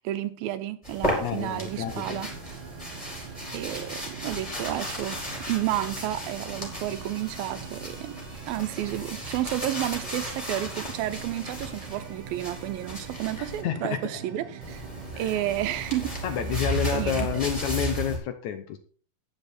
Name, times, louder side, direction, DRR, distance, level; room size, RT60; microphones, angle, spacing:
voice 1, 0.0-2.3 3.5-8.2 8.5-14.9 15.2-16.1 16.9-17.3, right 13 dB, 85° right, 2.7 m, -31 dB
sound 1, 0.8-13.6 14.6-18.2, right 1 dB, 10° left, 4.0 m, -35 dB
voice 2, 1.2-2.2 13.4-14.0 15.1-15.4 16.2-18.8, left 10 dB, 70° left, 1.9 m, -29 dB
sound 2, 1.4-18.2, right 7 dB, 50° right, 1.6 m, -43 dB
11.5 x 9.4 x 4.3 m
omnidirectional pair, 4.1 m